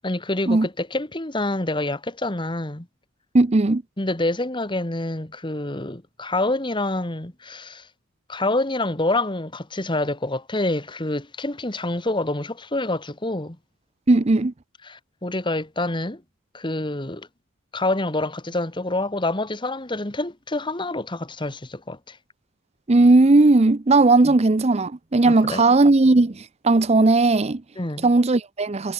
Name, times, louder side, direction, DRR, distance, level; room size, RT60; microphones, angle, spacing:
voice 1, 0.0-2.9 4.0-7.9 8.3-13.6 14.9-16.2 16.5-17.3 17.7-22.2 24.2-24.3 25.2-25.7 27.8-28.1, left 2 dB, 20° left, 1.6 m, -27 dB
voice 2, 3.3-3.8 14.1-14.5 22.9-27.6 28.0-28.9, right 2 dB, 30° right, 0.6 m, -17 dB
head